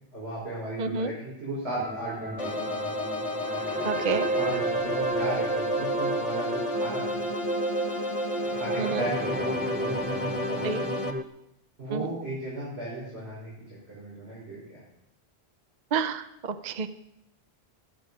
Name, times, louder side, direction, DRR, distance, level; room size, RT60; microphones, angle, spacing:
voice 1, 0.1-2.8 4.3-7.2 8.6-10.8 11.8-13.5 13.9-14.8, right 1 dB, 70° right, -7 dB, 5.3 m, -35 dB
voice 2, 0.8-1.1 3.8-4.3 8.8-9.0 10.6-10.8 11.9-12.1 15.9-16.9, right 5 dB, 45° right, 11 dB, 0.7 m, -29 dB
sound 1, 1.8-11.2, right 2 dB, 15° right, 0.4 m, -31 dB
sound 2, 2.4-11.1, left 2 dB, 30° left, 1.1 m, -32 dB
13.5 x 11.5 x 5.5 m, 0.85 s
omnidirectional pair, 1.1 m